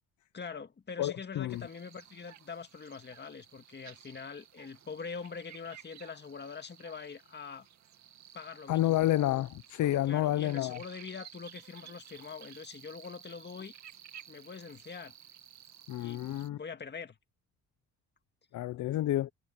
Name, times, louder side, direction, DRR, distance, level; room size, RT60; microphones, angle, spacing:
voice 1, 0.3-7.7 8.3-9.1 10.1-13.7 14.3-15.1 16.0-17.2, left 5 dB, 35° left, 2.0 m, -44 dB
voice 2, 1.0-1.6 8.7-10.8 15.9-16.6 18.5-19.3, left 14 dB, 75° left, 0.7 m, -29 dB
sound 1, 1.5-16.5, right 10 dB, 65° right, 2.4 m, -55 dB
cardioid pair, 90°, 30 cm